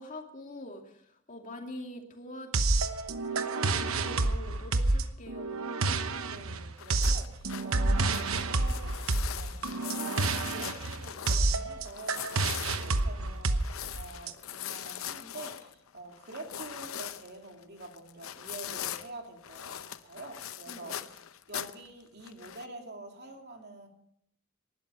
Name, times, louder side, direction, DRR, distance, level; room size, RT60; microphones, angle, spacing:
voice 1, 0.0-2.5 3.2-5.7 20.7-21.1, left 1 dB, 40° left, 2 dB, 2.5 m, -45 dB
sound 1, 2.5-14.3, right 3 dB, 90° right, 1.0 m, -29 dB
voice 2, 6.2-21.2 21.5-23.9, right 2 dB, 50° right, 3 dB, 2.9 m, -47 dB
sound 2, 6.8-11.5 11.8-19.1 19.4-21.9 22.2-22.6, left 10 dB, 85° left, 0.7 m, -41 dB
19.0 x 12.0 x 5.6 m, 0.72 s
head